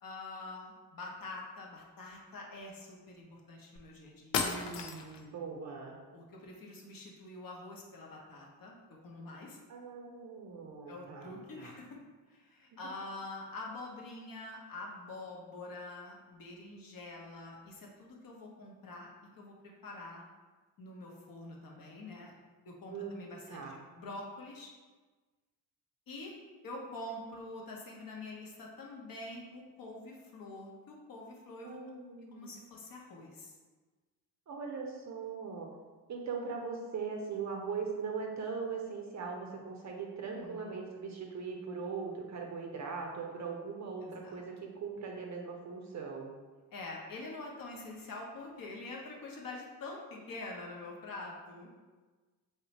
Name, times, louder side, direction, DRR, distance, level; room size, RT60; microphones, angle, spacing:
voice 1, 0.0-4.5 6.1-8.8 9.0-9.6 10.9-12.0 12.3-20.2 20.8-22.3 22.7-24.7 26.1-26.3 26.6-31.8 32.3-33.6 40.2-40.8 44.0-44.4 46.7-51.7, left 2 dB, 45° left, -1 dB, 0.9 m, -46 dB
sound 1, 3.8-3.9 4.3-5.3, left 5 dB, 65° left, 0.6 m, -34 dB
voice 2, 4.4-6.0 9.7-11.3 11.6-11.8 22.9-23.8 31.6-32.5 34.5-35.7 36.1-46.3, right 5 dB, 35° right, 1 dB, 0.6 m, -40 dB
3.2 x 2.8 x 2.9 m, 1.3 s
hypercardioid pair, 50°, 47 cm